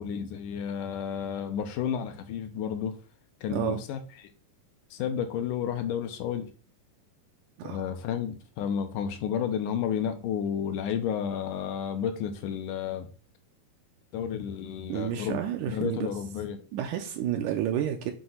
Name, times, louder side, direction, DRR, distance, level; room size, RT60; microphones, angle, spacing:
voice 1, 0.0-3.0 3.4-4.3 4.9-6.5 7.6-13.1 14.1-15.4 15.7-16.6, left 8 dB, 80° left, 2.3 m, -31 dB
voice 2, 14.9-16.1 16.7-18.1, right 10 dB, 80° right, 2.0 m, -30 dB
7.8 x 2.9 x 5.6 m
omnidirectional pair, 3.8 m